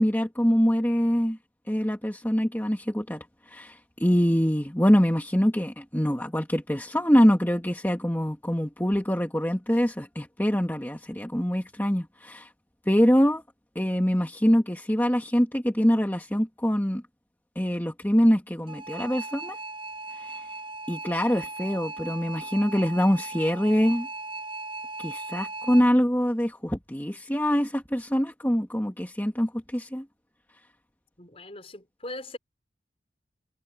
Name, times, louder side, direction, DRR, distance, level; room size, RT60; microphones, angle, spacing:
voice 1, 0.0-1.4 1.7-12.5 12.9-13.4 13.8-17.0 17.6-19.6 20.1-20.5 20.9-24.1 25.0-30.1, equal, 10° left, 1.9 m, -24 dB
sound 1, 18.7-25.8, right 3 dB, 30° right, 7.5 m, -37 dB
voice 2, 31.2-32.4, left 1 dB, 30° left, 4.9 m, -40 dB
head